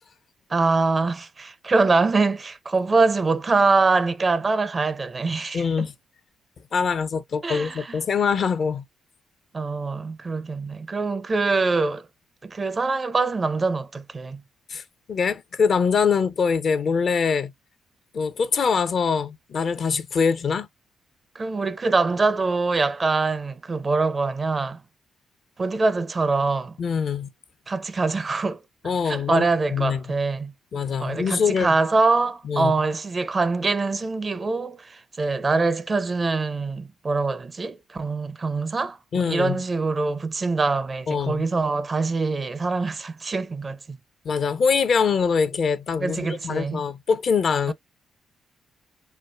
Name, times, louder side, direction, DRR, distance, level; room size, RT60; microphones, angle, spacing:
voice 1, 0.5-5.9 7.4-7.9 9.5-12.1 12.4-14.4 21.4-24.8 25.6-26.8 27.7-28.6 29.0-30.5 31.0-39.0 39.3-44.0 46.0-46.8 47.7-47.8, right 3 dB, 35° right, 0.5 m, -24 dB
voice 2, 5.5-5.9 6.7-8.8 14.7-14.8 15.1-17.5 18.1-20.7 26.8-27.3 28.8-29.4 29.7-30.1 30.7-31.8 32.4-32.7 39.1-39.6 41.1-41.4 44.2-47.7, left 6 dB, 50° left, 0.5 m, -23 dB
4.5 x 2.1 x 2.3 m
figure-of-eight pair, 40°, 0 cm